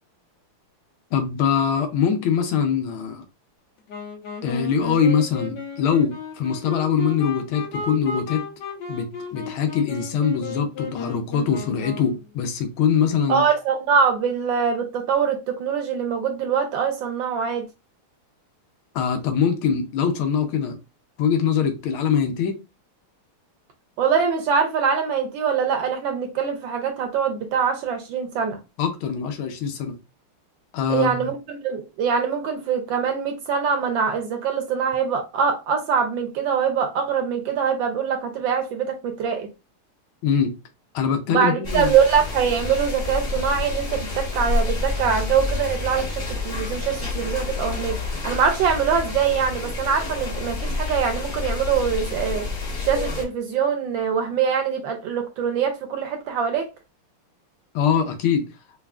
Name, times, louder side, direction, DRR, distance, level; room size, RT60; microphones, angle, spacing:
voice 1, 1.1-3.2 4.4-8.4 8.9-13.4 18.9-20.8 21.2-22.6 28.8-29.9 30.7-31.3 40.2-40.6 40.9-41.9 57.7-58.4, left 7 dB, 75° left, 1.5 m, -23 dB
Wind instrument woodwind instrument, 3.9-12.3, left 4 dB, 60° left, 1.5 m, -34 dB
voice 2, 13.3-17.7 24.0-28.6 30.9-39.5 41.3-52.5 52.8-56.7, right 6 dB, 75° right, 1.2 m, -23 dB
sound 1, 41.6-53.2, left 3 dB, 35° left, 1.2 m, -28 dB
5.6 x 2.4 x 2.3 m
omnidirectional pair, 2.4 m